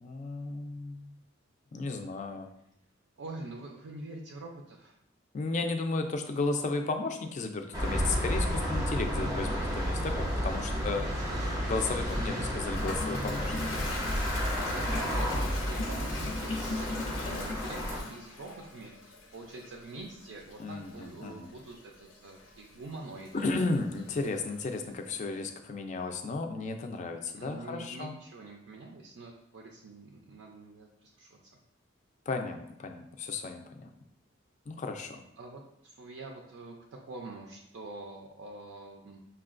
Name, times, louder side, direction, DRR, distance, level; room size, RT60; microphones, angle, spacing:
voice 1, 0.0-1.1 1.7-2.5 5.3-11.0 11.7-13.5 20.6-21.5 23.3-28.2 32.3-33.9 34.7-35.2, left 3 dB, 40° left, 5 dB, 0.4 m, -34 dB
voice 2, 3.2-5.0 9.1-9.5 10.7-11.6 14.7-23.5 27.3-31.4 35.4-39.2, right 2 dB, 70° right, 0 dB, 0.4 m, -45 dB
sound 1, 7.7-18.0, equal, 20° right, 0.6 m, -31 dB
Toilet flush, 12.1-24.9, left 3 dB, 80° left, 0.6 m, -41 dB
5.7 x 2.2 x 2.4 m, 0.79 s
head